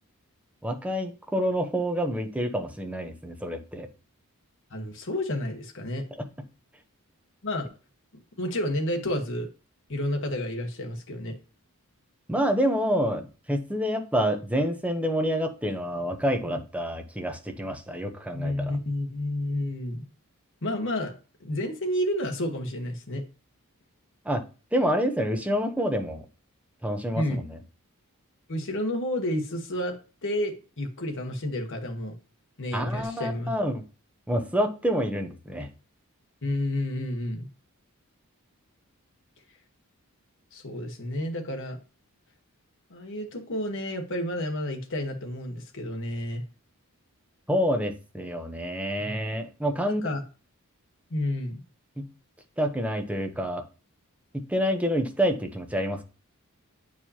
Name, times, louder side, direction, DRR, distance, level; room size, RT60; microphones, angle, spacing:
voice 1, 0.6-3.9 6.2-6.3 12.3-18.8 24.2-24.4 24.7-26.2 26.8-27.6 32.7-33.8 34.3-35.7 47.5-50.0 52.0-52.1 52.6-53.6 54.3-56.0, equal, 5° right, 6 dB, 0.8 m, -28 dB
voice 2, 4.7-6.0 7.4-7.7 8.4-9.5 9.9-11.4 18.3-20.0 20.6-21.1 21.4-23.2 27.1-27.4 28.5-29.9 30.2-32.1 32.6-33.5 36.4-37.5 40.5-41.8 42.9-46.4 49.0-49.2 50.0-50.2 51.1-51.6, left 1 dB, 60° left, 3 dB, 1.3 m, -30 dB
8.4 x 4.7 x 2.9 m, 0.34 s
head